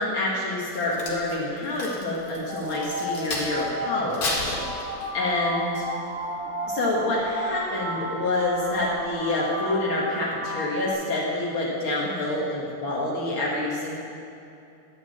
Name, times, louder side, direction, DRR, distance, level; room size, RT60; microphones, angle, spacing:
voice 1, 0.0-4.6 5.1-5.9 6.7-13.9, left 2 dB, 90° left, -5 dB, 1.1 m, -27 dB
Crack, 0.6-3.7 4.1-5.3 5.8-6.1, left 2 dB, 40° left, 2.0 m, -32 dB
sound 1, 2.5-10.9, equal, 70° right, 3.7 m, -33 dB
13.0 x 6.4 x 9.0 m, 2.7 s
omnidirectional pair, 4.8 m